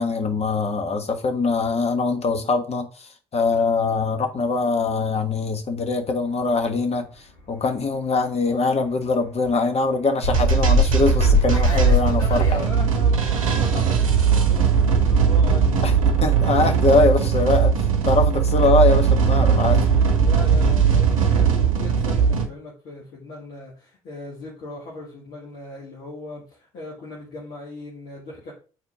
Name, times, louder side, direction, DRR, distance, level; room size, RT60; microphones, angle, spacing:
voice 1, 0.0-12.7 15.8-15.9 16.2-17.7 18.0-19.8, left 3 dB, 40° left, 1.4 m, -22 dB
Fixed-wing aircraft airplane, 6.2-12.7, left 2 dB, 80° left, 1.9 m, -40 dB
sound 1, 10.2-22.5, right 5 dB, 80° right, 0.8 m, -18 dB
voice 2, 12.3-15.9 20.2-28.5, left 2 dB, 55° left, 2.2 m, -38 dB
8.4 x 4.4 x 3.6 m
figure-of-eight pair, 50°, 17 cm